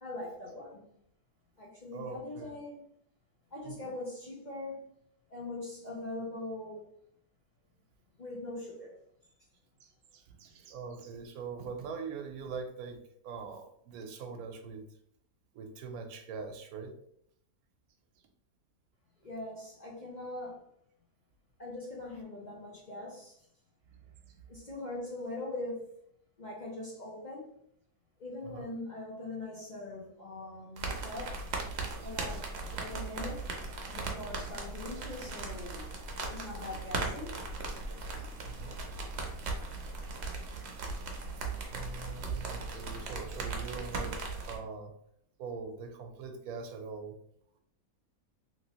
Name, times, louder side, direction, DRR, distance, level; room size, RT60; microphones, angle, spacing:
voice 1, 0.0-0.9 1.6-2.8 3.5-4.8 5.3-6.8 8.2-8.9 19.2-20.6 21.6-23.4 24.5-25.9 26.4-27.6 28.2-31.4 32.0-33.5 33.9-35.9 36.3-37.3, left 2 dB, 50° left, -4 dB, 0.6 m, -41 dB
voice 2, 1.9-2.5 3.6-3.9 9.8-13.0 13.2-14.8 15.5-16.9 23.9-24.4 28.4-28.7 32.0-32.4 38.4-38.8 41.7-44.9 45.4-47.2, right 5 dB, 80° right, 5 dB, 1.1 m, -43 dB
sound 1, 30.8-44.6, right 3 dB, 55° right, 0.8 m, -38 dB
3.0 x 3.0 x 2.8 m, 0.71 s
omnidirectional pair, 1.6 m